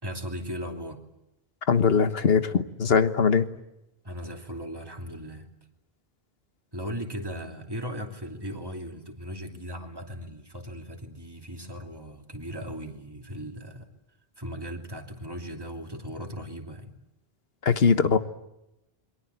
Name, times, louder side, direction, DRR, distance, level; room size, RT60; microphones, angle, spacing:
voice 1, 0.0-1.0 4.0-5.5 6.7-13.9 14.4-16.9, equal, 20° right, 3 dB, 2.9 m, -37 dB
voice 2, 1.7-3.5 17.6-18.2, left 5 dB, 70° left, 11 dB, 1.5 m, -21 dB
27.5 x 23.5 x 8.2 m, 0.88 s
omnidirectional pair, 1.0 m